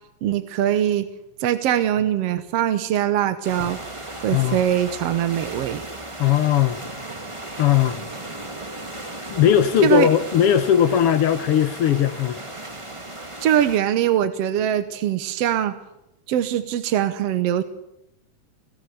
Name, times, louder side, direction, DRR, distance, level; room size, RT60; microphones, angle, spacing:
voice 1, 0.2-1.1 1.4-3.8 4.2-5.8 9.8-10.1 13.4-15.7 16.3-17.6, right 10 dB, 65° right, 1.7 m, -22 dB
sound 1, 3.4-13.8, right 2 dB, 15° right, 1.4 m, -36 dB
voice 2, 6.2-6.8 7.6-8.1 9.3-12.4, left 10 dB, 70° left, 1.4 m, -18 dB
28.0 x 17.0 x 7.0 m
omnidirectional pair, 3.7 m